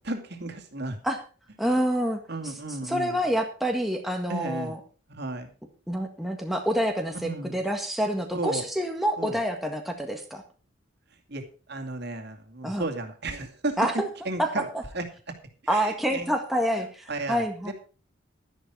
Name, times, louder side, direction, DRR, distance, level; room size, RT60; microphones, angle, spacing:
voice 1, 0.0-1.0 1.7-1.8 2.3-3.2 4.3-4.7 5.1-5.5 7.2-7.6 8.3-8.7 9.2-9.4 11.3-11.4 11.7-14.7 14.9-15.1 15.6-16.3 16.8-17.7, right 2 dB, 55° right, 5 dB, 2.5 m, -33 dB
voice 2, 1.6-2.2 2.9-4.8 5.9-10.4 12.6-12.9 13.8-14.1 14.4-14.8 15.7-17.7, equal, ahead, 2 dB, 1.6 m, -27 dB
12.0 x 11.0 x 4.6 m, 0.36 s
head